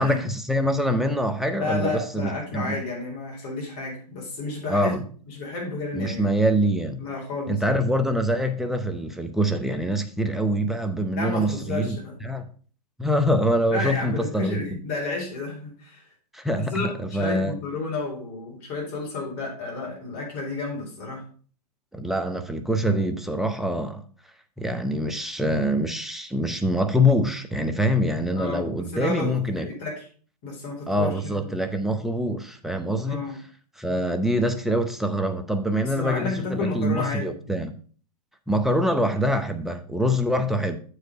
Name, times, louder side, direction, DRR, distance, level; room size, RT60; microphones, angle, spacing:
voice 1, 0.0-2.8 4.7-5.0 5.9-7.0 7.5-12.5 13.0-14.6 16.3-16.7 17.1-17.5 21.9-24.0 24.6-29.7 30.9-33.2 33.8-37.7 38.5-40.8, equal, ahead, 7 dB, 0.7 m, -24 dB
voice 2, 1.5-5.0 5.3-6.3 7.0-7.6 11.1-12.1 13.7-16.0 16.6-21.2 28.4-30.0 30.4-31.6 33.0-33.4 35.9-37.4, left 3 dB, 40° left, -2 dB, 4.2 m, -31 dB
7.9 x 4.9 x 5.2 m, 0.42 s
hypercardioid pair, 120°, 21 cm